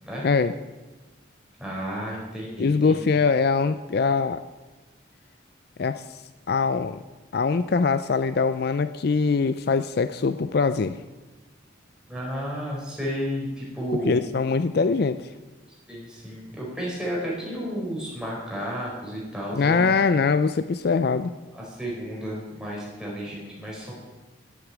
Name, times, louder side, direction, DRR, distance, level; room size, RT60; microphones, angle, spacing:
voice 1, 0.2-0.5 2.6-4.4 5.8-6.0 6.5-7.0 7.3-11.0 14.0-15.3 19.5-21.3, left 4 dB, 50° left, 12 dB, 0.4 m, -22 dB
voice 2, 1.6-3.0 12.1-14.2 15.9-20.0 21.5-23.9, equal, 5° right, -5 dB, 4.4 m, -32 dB
11.0 x 8.2 x 8.8 m, 1.2 s
head